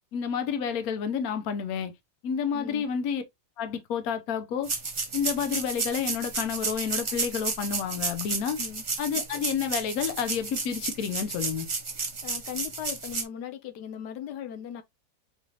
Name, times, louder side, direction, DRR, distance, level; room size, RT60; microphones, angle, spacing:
voice 1, 0.1-1.9 2.2-3.2 3.6-4.7 5.1-8.6 9.0-11.7, left 7 dB, 65° left, 1.2 m, -30 dB
voice 2, 2.5-2.9 8.6-8.8 12.2-14.8, left 9 dB, 90° left, 1.3 m, -38 dB
sound 1, 4.6-13.2, right 4 dB, 40° right, 0.4 m, -32 dB
4.5 x 3.9 x 2.8 m
omnidirectional pair, 1.7 m